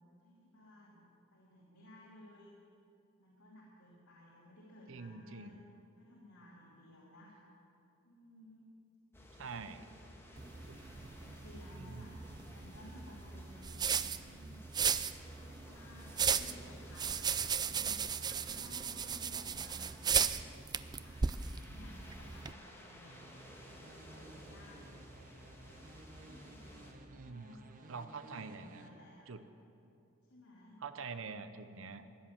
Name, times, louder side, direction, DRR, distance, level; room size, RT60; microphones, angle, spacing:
voice 1, 0.2-1.0 1.3-2.6 3.2-5.6 6.0-7.4 8.0-8.7 9.3-9.7 10.9-14.7 15.3-20.3 20.7-23.2 23.7-24.9 26.2-29.3 30.3-30.8, left 1 dB, 90° left, -6 dB, 2.8 m, -57 dB
voice 2, 4.9-5.6 9.4-9.8 10.7-11.1 11.8-12.2 27.1-27.6 27.9-28.9 29.3-29.4 30.8-32.3, right 4 dB, 70° right, 11 dB, 0.8 m, -46 dB
sound 1, 9.1-26.9, equal, 10° left, 1.7 m, -55 dB
sound 2, 10.4-22.5, right 7 dB, 20° right, 0.3 m, -36 dB
sound 3, 23.1-28.9, right 2 dB, 40° right, 0.9 m, -56 dB
15.5 x 10.5 x 7.3 m, 2.6 s
head